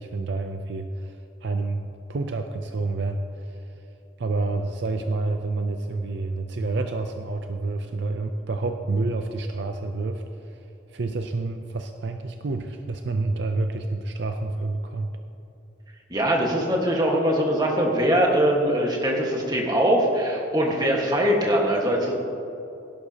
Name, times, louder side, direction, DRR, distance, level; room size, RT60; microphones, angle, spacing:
voice 1, 0.0-3.6 4.2-10.6 10.9-15.1, right 3 dB, 55° right, 6 dB, 0.5 m, -29 dB
voice 2, 16.1-22.1, equal, 20° right, -1 dB, 1.5 m, -22 dB
17.0 x 11.5 x 2.9 m, 2.8 s
head